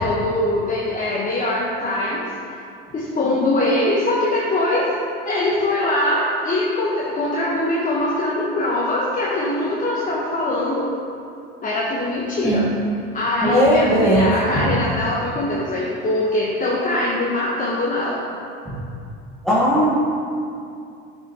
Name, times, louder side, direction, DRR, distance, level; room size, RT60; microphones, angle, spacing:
voice 1, 0.0-2.3 2.9-4.9 5.2-10.9 11.6-12.6 13.1-18.2, left 1 dB, 25° left, -6 dB, 1.2 m, -22 dB
voice 2, 13.4-14.3 19.4-19.9, equal, ahead, -9 dB, 1.4 m, -17 dB
8.6 x 5.9 x 3.0 m, 2.5 s
supercardioid pair, 90°, 29 cm